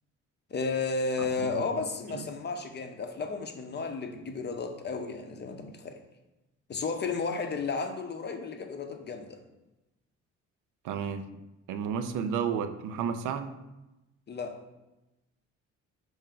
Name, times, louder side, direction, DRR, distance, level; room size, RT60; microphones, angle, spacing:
voice 1, 0.5-6.0 6.7-9.4 14.3-14.6, left 4 dB, 35° left, 5 dB, 0.6 m, -33 dB
voice 2, 1.2-1.5 2.1-2.3 10.8-11.3 11.7-13.5, right 7 dB, 85° right, 9 dB, 0.5 m, -32 dB
5.5 x 2.6 x 3.7 m, 0.98 s
cardioid pair, 90°, 30 cm